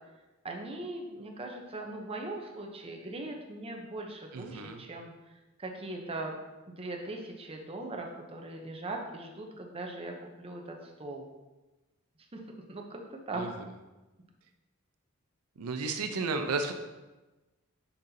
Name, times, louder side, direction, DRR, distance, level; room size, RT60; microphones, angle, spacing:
voice 1, 0.4-5.1 5.6-6.4 6.7-11.3 12.3-12.4 12.7-13.0 13.3-13.5, right 2 dB, 25° right, 2 dB, 0.7 m, -40 dB
voice 2, 4.3-4.8 13.4-13.5 15.6-16.7, right 3 dB, 85° right, 6 dB, 0.5 m, -33 dB
6.4 x 5.5 x 2.7 m, 1.1 s
head